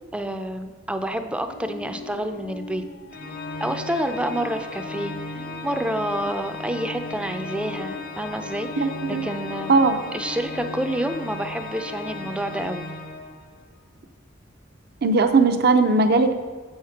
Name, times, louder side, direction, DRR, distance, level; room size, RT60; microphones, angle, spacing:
voice 1, 0.1-2.8 3.6-5.1 5.6-9.8 10.1-12.9, right 1 dB, 5° right, 7 dB, 0.5 m, -28 dB
sound 1, 1.5-12.6, left 4 dB, 70° left, 1.3 m, -40 dB
Organ, 3.1-13.7, left 2 dB, 50° left, 0.8 m, -36 dB
voice 2, 8.8-9.2 9.7-10.0 15.0-16.3, right 3 dB, 55° right, 7 dB, 0.6 m, -18 dB
7.7 x 6.5 x 5.8 m, 1.5 s
head